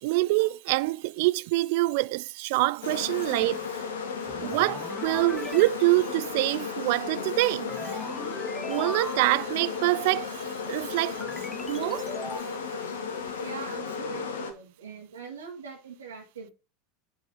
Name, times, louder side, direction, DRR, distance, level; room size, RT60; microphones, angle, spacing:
voice 1, 0.0-3.8 4.4-7.7 8.7-11.2 11.7-12.1, right 21 dB, 60° right, 0.3 m, -25 dB
sound 1, 2.8-14.5, left 5 dB, 70° left, 1.0 m, -34 dB
sound 2, 4.3-5.7 7.7-9.5 11.2-12.4, left 2 dB, 10° left, 0.5 m, -39 dB
voice 2, 13.4-16.5, right 6 dB, 80° right, 1.8 m, -42 dB
7.9 x 3.9 x 4.5 m
figure-of-eight pair, 80°, 0 cm